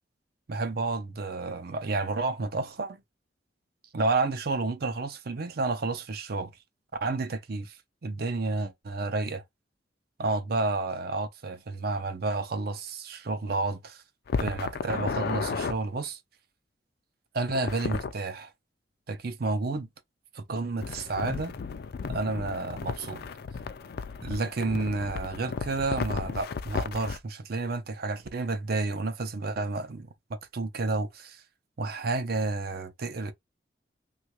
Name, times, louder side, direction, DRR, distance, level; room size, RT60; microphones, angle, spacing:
voice 1, 0.5-3.0 3.9-6.5 7.0-7.7 8.0-9.4 10.2-14.0 14.4-16.2 17.3-18.5 19.1-19.9 20.3-21.5 22.1-23.2 24.2-31.4 31.8-33.3, right 3 dB, 60° right, 0.6 m, -30 dB
sound 1, 14.3-15.7 17.5-18.1 20.8-27.2, left 5 dB, 60° left, 0.4 m, -34 dB
3.1 x 2.5 x 2.9 m
head